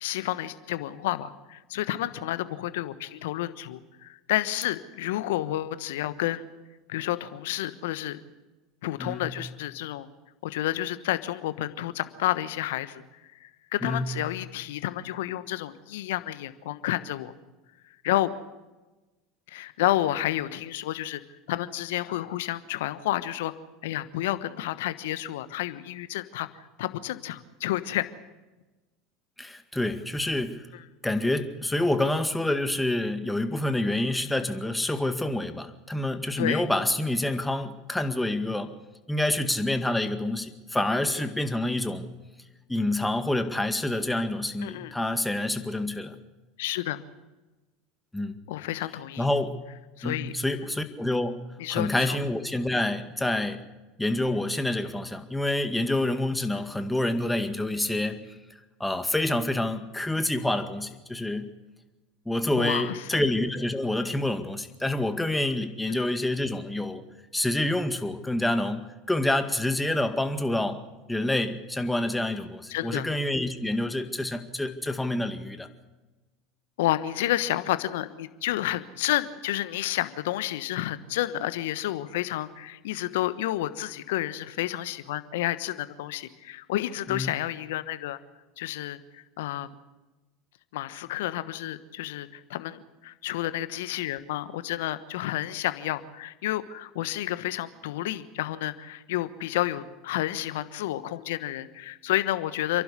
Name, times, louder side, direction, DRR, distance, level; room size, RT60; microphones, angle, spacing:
voice 1, 0.0-6.4 6.9-8.2 8.8-10.1 10.4-13.0 13.4-17.3 18.0-18.3 19.5-21.2 21.5-23.5 23.8-26.5 26.8-28.1 30.7-30.8 36.4-36.7 44.6-44.9 46.6-47.0 48.5-49.3 50.0-50.3 51.6-52.2 56.5-56.6 62.6-63.2 65.9-66.0 72.7-73.1 76.8-88.2 88.6-89.7 90.7-102.8, left 14 dB, 70° left, 13 dB, 1.2 m, -30 dB
voice 2, 9.0-9.3 13.8-14.1 29.4-30.7 31.0-38.7 39.1-42.1 42.7-46.2 48.1-48.4 49.2-49.6 50.0-53.6 54.0-58.3 58.8-61.5 62.3-67.0 67.3-70.8 71.1-75.7 87.1-87.3, left 1 dB, 5° left, 8 dB, 2.0 m, -27 dB
28.5 x 11.5 x 8.3 m, 1.1 s
hypercardioid pair, 80°, 0 cm